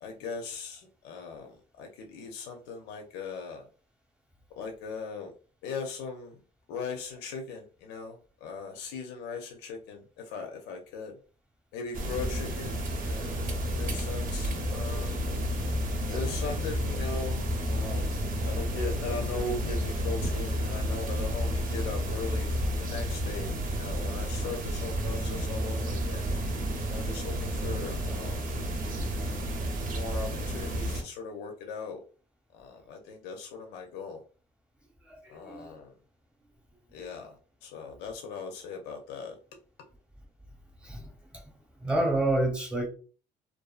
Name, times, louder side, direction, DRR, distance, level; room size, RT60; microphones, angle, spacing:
voice 1, 0.0-3.7 4.6-5.3 5.6-6.4 6.7-11.2 11.7-15.2 15.6-15.8 16.1-18.2 18.4-26.2 26.9-28.4 29.2-29.6 29.9-32.0 32.5-34.2 35.3-36.0 36.9-39.4, left 4 dB, 85° left, 0.5 m, -39 dB
sound 1, 11.9-31.0, right 1 dB, 55° right, 0.7 m, -32 dB
sound 2, 13.4-23.4, left 5 dB, 10° left, 0.4 m, -37 dB
voice 2, 35.1-35.7 40.8-41.4 41.8-42.9, right 1 dB, 5° right, 0.8 m, -29 dB
2.5 x 2.4 x 2.4 m
cardioid pair, 110°, 17 cm